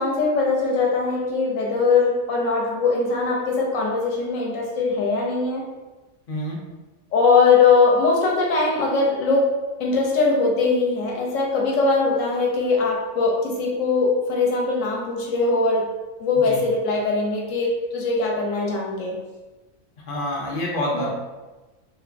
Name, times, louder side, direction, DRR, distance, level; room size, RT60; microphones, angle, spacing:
voice 1, 0.0-5.6 7.1-9.5 9.8-15.9 16.2-19.2 20.9-21.1, left 4 dB, 70° left, -2 dB, 0.9 m, -21 dB
voice 2, 6.3-6.6 16.3-16.6 20.1-21.1, left 1 dB, 50° left, -3 dB, 0.6 m, -27 dB
3.0 x 2.1 x 2.4 m, 1.2 s
omnidirectional pair, 1.4 m